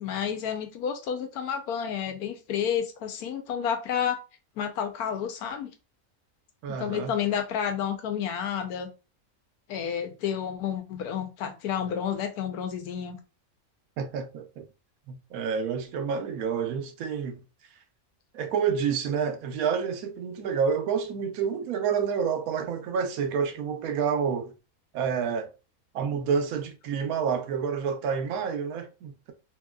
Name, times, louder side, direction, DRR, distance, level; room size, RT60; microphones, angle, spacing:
voice 1, 0.0-4.2 4.6-5.7 6.8-8.9 9.7-13.2, left 8 dB, 90° left, 1.2 m, -30 dB
voice 2, 6.6-7.1 14.0-14.6 15.1-17.4 18.3-24.5 24.9-25.5 25.9-29.3, right 6 dB, 80° right, 1.0 m, -29 dB
2.9 x 2.8 x 2.3 m
omnidirectional pair, 1.5 m